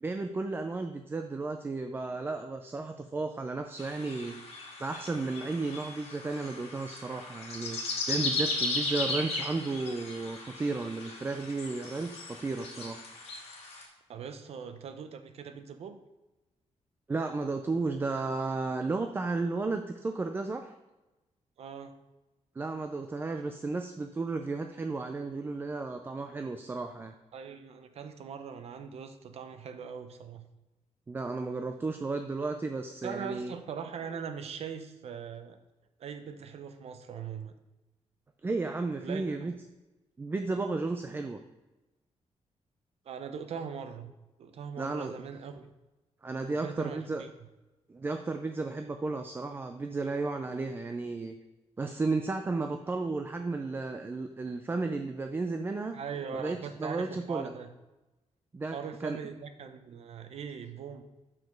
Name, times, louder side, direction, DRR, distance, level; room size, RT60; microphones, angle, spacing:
voice 1, 0.0-13.0 17.1-20.7 22.6-27.1 31.1-33.5 38.4-39.5 40.2-41.4 44.8-45.2 46.2-47.2 47.9-51.4 51.8-56.0 56.3-57.5 58.5-59.2, right 3 dB, 20° right, 6 dB, 0.3 m, -33 dB
sound 1, 3.8-13.8, left 2 dB, 60° left, 1.8 m, -36 dB
voice 2, 14.1-16.0 21.6-21.9 27.3-30.4 33.0-35.6 36.0-37.5 39.0-39.5 43.1-44.1 44.4-45.7 46.5-47.3 55.9-57.7 58.7-61.0, right 6 dB, 60° right, 8 dB, 0.7 m, -41 dB
6.0 x 5.0 x 5.2 m, 1.1 s
wide cardioid pair, 160°, 12 cm